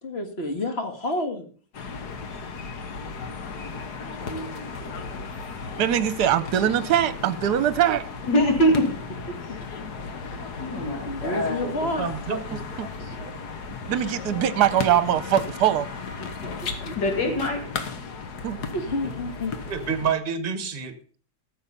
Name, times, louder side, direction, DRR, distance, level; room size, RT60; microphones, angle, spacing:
voice 1, 0.0-1.5 9.5-9.6 10.3-10.4 11.0-12.1 16.6-17.0 18.7-19.6, left 1 dB, 35° left, 1.9 m, -29 dB
sound 1, 1.7-20.1, left 4 dB, 65° left, 1.8 m, -35 dB
voice 2, 3.6-5.2 8.3-8.9 10.6-11.7 17.0-17.6, equal, 80° left, 2.7 m, -25 dB
voice 3, 5.8-8.1 12.8-12.9 13.9-15.9 18.4-18.6, right 10 dB, 70° right, 1.3 m, -22 dB
voice 4, 11.6-12.6 19.0-19.1 19.7-20.9, right 6 dB, 35° right, 1.4 m, -29 dB
14.5 x 7.1 x 5.4 m
omnidirectional pair, 1.9 m